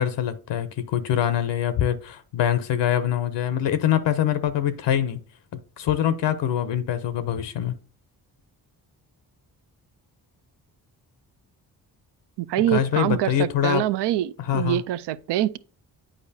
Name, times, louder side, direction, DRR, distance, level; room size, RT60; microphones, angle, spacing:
voice 1, 0.0-5.2 5.8-7.8 12.7-13.9 14.4-14.8, left 10 dB, 70° left, 0.7 m, -24 dB
voice 2, 12.4-15.6, right 13 dB, 70° right, 0.5 m, -25 dB
8.8 x 4.8 x 2.7 m
supercardioid pair, 45°, 44 cm